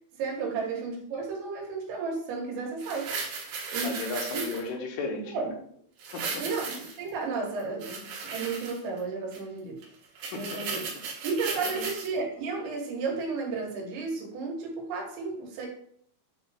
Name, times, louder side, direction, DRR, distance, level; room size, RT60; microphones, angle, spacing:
voice 1, 0.2-3.3 3.7-4.0 4.3-4.4 5.3-5.5 6.4-9.8 10.3-10.9 11.2-15.7, right 4 dB, 85° right, 0 dB, 3.7 m, -33 dB
sound 1, 2.8-4.7 6.0-7.1 7.6-9.0 9.3-9.4 9.8-9.9 10.2-12.1 12.6-12.7, right 5 dB, 70° right, 2.3 m, -36 dB
voice 2, 3.8-5.5 6.1-6.4 10.3-10.5 10.7-10.8 11.8-11.9, left 3 dB, 75° left, 1 dB, 2.8 m, -35 dB
8.5 x 3.3 x 3.4 m, 0.63 s
omnidirectional pair, 5.1 m